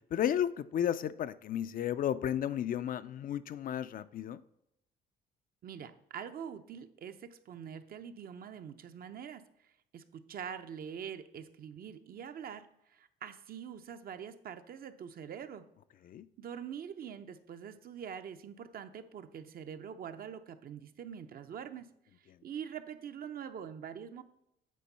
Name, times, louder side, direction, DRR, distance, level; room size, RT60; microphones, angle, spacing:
voice 1, 0.1-4.4 16.1-16.3, left 10 dB, 50° left, 14 dB, 0.4 m, -33 dB
voice 2, 5.6-9.4 9.9-15.7 16.4-21.9 22.4-24.2, right 8 dB, 55° right, 9 dB, 0.6 m, -44 dB
8.5 x 3.7 x 5.4 m, 0.81 s
cardioid pair, 95°, 18 cm